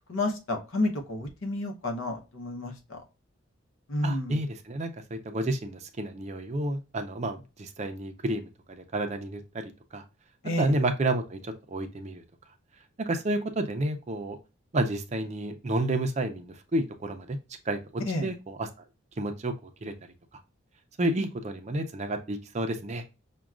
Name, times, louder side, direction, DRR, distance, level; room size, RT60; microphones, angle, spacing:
voice 1, 0.1-3.0 3.9-4.4 10.4-10.7 18.0-18.3, left 1 dB, 75° left, 4 dB, 0.8 m, -30 dB
voice 2, 4.0-10.0 10.6-12.2 13.0-14.4 14.7-17.4 17.7-18.7 19.2-19.9 21.0-23.0, right 1 dB, 35° right, 6 dB, 0.4 m, -30 dB
5.9 x 2.2 x 2.4 m, 0.29 s
head